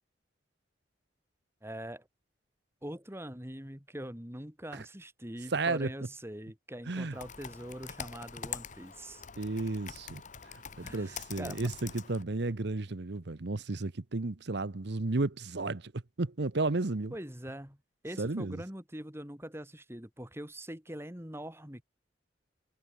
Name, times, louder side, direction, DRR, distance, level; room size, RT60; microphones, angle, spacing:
voice 1, 1.6-2.1 2.8-9.2 10.8-11.7 17.1-17.8 18.0-21.8, right 1 dB, 15° right, 3.8 m, -43 dB
voice 2, 5.5-5.9 6.9-7.1 9.4-10.2 10.8-17.1 18.2-18.6, right 2 dB, 60° right, 0.9 m, -33 dB
Computer keyboard, 7.1-12.2, left 7 dB, 40° left, 1.1 m, -44 dB
head